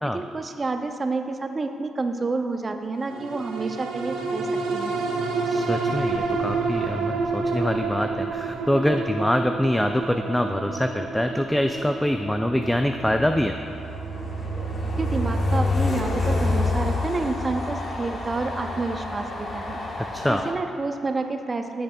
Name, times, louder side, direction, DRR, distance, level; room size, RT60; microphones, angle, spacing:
voice 1, 0.1-5.0 15.0-19.8 20.3-21.8, right 3 dB, 35° right, 6 dB, 0.6 m, -29 dB
sound 1, 3.0-17.7 18.1-18.2, right 4 dB, 90° right, 0.8 m, -30 dB
voice 2, 5.5-13.6 20.1-20.4, left 1 dB, 5° left, 6 dB, 0.3 m, -24 dB
Train, 12.2-20.5, left 2 dB, 50° left, 1.1 m, -28 dB
13.5 x 6.5 x 2.3 m, 2.6 s
cardioid pair, 75°, 0 cm